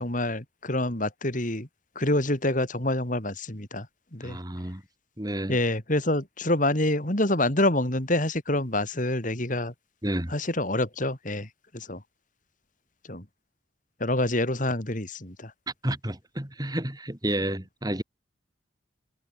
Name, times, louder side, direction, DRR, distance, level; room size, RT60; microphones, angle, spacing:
voice 1, 0.0-1.7 2.0-3.9 4.1-4.4 5.5-9.7 10.3-11.5 11.7-12.0 13.1-13.2 14.0-15.5, left 1 dB, 40° left, 3.9 m, -26 dB
voice 2, 4.2-4.8 5.2-5.6 10.0-10.3 15.8-18.0, right 1 dB, 20° right, 2.6 m, -30 dB
head